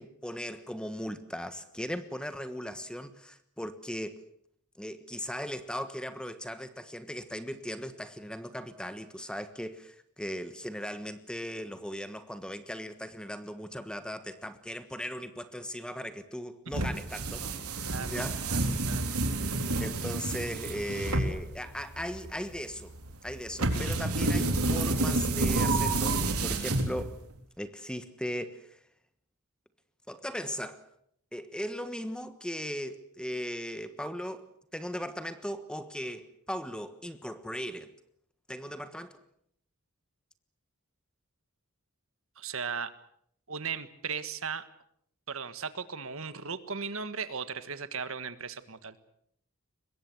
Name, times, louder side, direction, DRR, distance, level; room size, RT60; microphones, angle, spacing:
voice 1, 0.0-4.2 4.8-17.5 18.0-18.4 19.8-22.9 23.2-26.2 26.4-27.2 27.6-28.8 30.1-30.8 31.3-34.5 34.7-37.9 38.5-39.2, equal, 5° left, 1.3 m, -38 dB
sound 1, 16.7-27.3, right 2 dB, 85° right, 3.6 m, -29 dB
voice 2, 17.9-19.2 42.4-42.9 43.5-44.6 45.3-49.0, right 6 dB, 65° right, 1.6 m, -37 dB
24.0 x 21.5 x 7.9 m
head